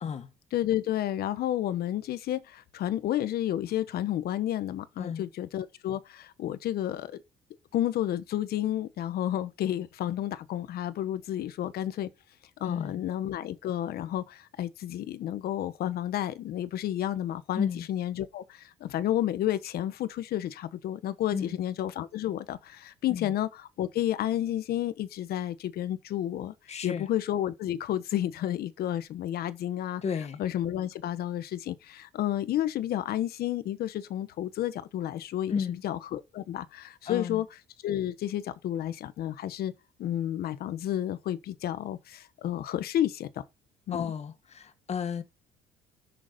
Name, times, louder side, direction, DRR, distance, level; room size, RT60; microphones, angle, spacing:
voice 1, 0.5-7.2 7.7-12.1 12.6-26.5 26.8-30.0 30.4-37.5 37.8-39.7 40.0-43.4 43.9-44.1, left 12 dB, 65° left, 1.2 m, -31 dB
voice 2, 12.6-13.0 17.5-17.9 21.3-21.6 23.1-23.3 26.7-27.1 30.0-30.4 35.5-35.8 37.1-37.4 43.9-45.2, left 7 dB, 40° left, 1.6 m, -33 dB
7.0 x 6.7 x 5.2 m
cardioid pair, 110°, 17 cm